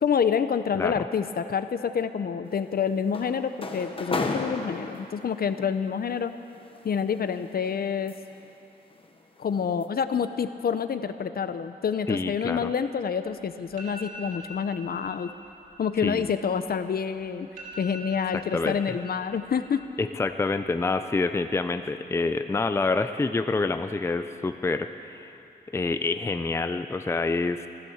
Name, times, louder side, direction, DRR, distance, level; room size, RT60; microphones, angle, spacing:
voice 1, 0.0-6.3 6.8-8.2 9.4-15.3 15.8-17.5 17.8-19.8, left 7 dB, 65° left, 11 dB, 0.6 m, -27 dB
voice 2, 0.7-1.1 12.1-12.7 16.0-16.3 18.5-19.0 20.0-25.3 25.7-27.7, left 3 dB, 15° left, 9 dB, 0.4 m, -27 dB
sound 1, 2.5-5.4 6.5-8.5 8.9-9.2 9.6-9.8, left 3 dB, 30° left, 1.0 m, -34 dB
sound 2, 13.3-13.4 13.7-14.5 14.9-15.2 15.5-17.0 17.3-17.4 17.6-19.0 19.3-19.9 20.2-20.7, equal, 55° right, 3.8 m, -43 dB
14.5 x 13.5 x 7.1 m, 2.8 s
wide cardioid pair, 170°, 17 cm